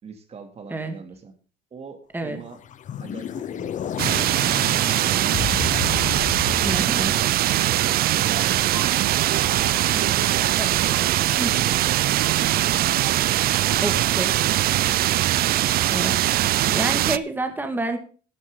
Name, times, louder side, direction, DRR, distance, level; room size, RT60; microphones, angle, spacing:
voice 1, 0.0-1.3 1.7-2.6 3.0-5.8 6.3-7.2 7.5-9.2 9.9-10.4 10.7-11.1 11.6-12.8 13.6-14.4, right 5 dB, 40° right, 7 dB, 2.7 m, -41 dB
sound 1, 2.5-7.8, left 9 dB, 50° left, 0.8 m, -32 dB
sound 2, 4.0-17.2, right 14 dB, 65° right, 0.5 m, -21 dB
voice 2, 6.6-7.1 10.6-10.7 11.4-11.7 13.8-14.3 15.9-16.4 16.7-18.0, right 2 dB, 10° right, 6 dB, 2.1 m, -28 dB
sound 3, 8.2-15.0, right 8 dB, 85° right, 2.3 m, -37 dB
12.0 x 11.0 x 3.9 m, 0.38 s
cardioid pair, 110°, 17 cm